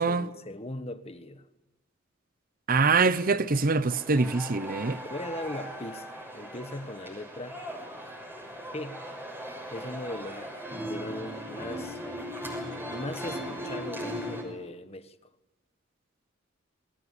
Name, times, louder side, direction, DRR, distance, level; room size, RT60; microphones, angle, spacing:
voice 1, 0.0-1.5 5.1-7.6 8.0-8.2 8.7-9.1 9.7-12.0 12.9-15.2, left 1 dB, 30° left, 1.5 m, -39 dB
voice 2, 2.7-5.0, right 4 dB, 45° right, 0.8 m, -24 dB
sound 1, 3.3-14.4, equal, 10° right, 6.4 m, -38 dB
28.0 x 21.5 x 8.4 m
head